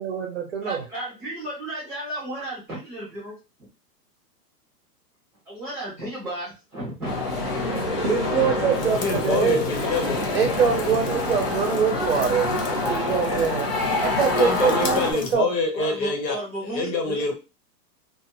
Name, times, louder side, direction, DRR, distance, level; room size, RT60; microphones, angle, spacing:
voice 1, 0.0-0.8 8.0-9.6 10.3-13.7 14.0-15.5, right 6 dB, 40° right, 3 dB, 0.6 m, -24 dB
voice 2, 0.6-3.7 5.4-7.1 7.6-7.7 15.7-17.2, right 1 dB, ahead, -7 dB, 0.7 m, -34 dB
sound 1, 7.0-15.1, left 2 dB, 35° left, 1.0 m, -26 dB
sound 2, 8.7-15.3, left 4 dB, 50° left, 0.7 m, -37 dB
voice 3, 9.0-10.2 14.3-16.4 16.7-17.3, left 3 dB, 90° left, 2 dB, 1.3 m, -26 dB
2.5 x 2.5 x 2.9 m, 0.29 s
supercardioid pair, 180°, 49 cm